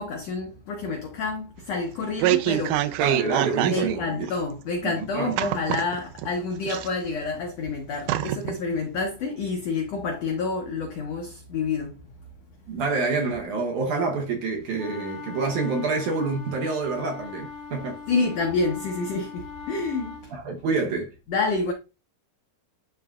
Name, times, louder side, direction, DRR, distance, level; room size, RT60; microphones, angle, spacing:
voice 1, 0.0-3.0 3.7-12.0 18.1-20.4 21.3-21.7, left 4 dB, 80° left, 1.5 m, -28 dB
sound 1, 1.8-4.0 4.3-4.4 5.4-6.3 6.7-7.3 7.7-7.8 8.1-8.6 8.9-9.0, right 13 dB, 85° right, 1.8 m, -25 dB
voice 2, 3.0-4.1 5.0-5.4 12.7-18.0 20.3-21.1, right 4 dB, 70° right, 2.1 m, -27 dB
sound 2, 14.8-20.3, left 5 dB, 50° left, 3.2 m, -40 dB
11.0 x 3.8 x 2.3 m
omnidirectional pair, 4.2 m